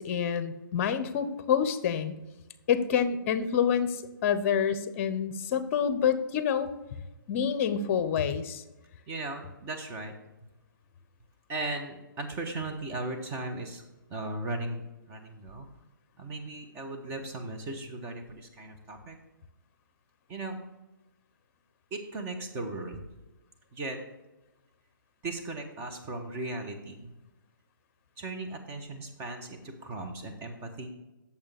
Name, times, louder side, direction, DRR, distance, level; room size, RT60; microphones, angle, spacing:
voice 1, 0.0-2.1 2.7-6.7 7.3-8.6, left 8 dB, 40° left, 12 dB, 0.8 m, -27 dB
voice 2, 9.1-10.1 11.5-13.8 14.1-14.8 15.1-15.7 16.2-19.2 20.3-20.6 21.9-23.0 23.7-24.0 25.2-27.0 28.2-30.9, right 2 dB, 20° right, 3 dB, 1.2 m, -37 dB
8.6 x 7.1 x 3.5 m, 1.0 s
hypercardioid pair, 140°, 12 cm